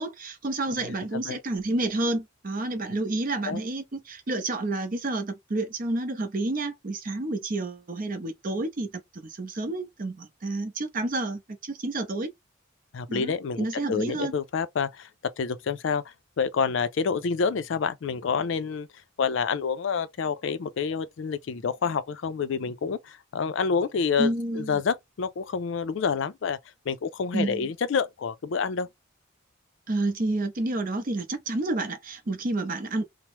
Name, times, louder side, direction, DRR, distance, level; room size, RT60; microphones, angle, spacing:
voice 1, 0.0-12.3 13.1-14.3 24.2-24.8 27.3-27.7 29.9-33.0, right 2 dB, 40° right, 0.6 m, -30 dB
voice 2, 12.9-15.1 15.4-18.9 19.2-26.6 26.9-28.9, left 5 dB, 60° left, 0.4 m, -28 dB
2.9 x 2.0 x 3.0 m
head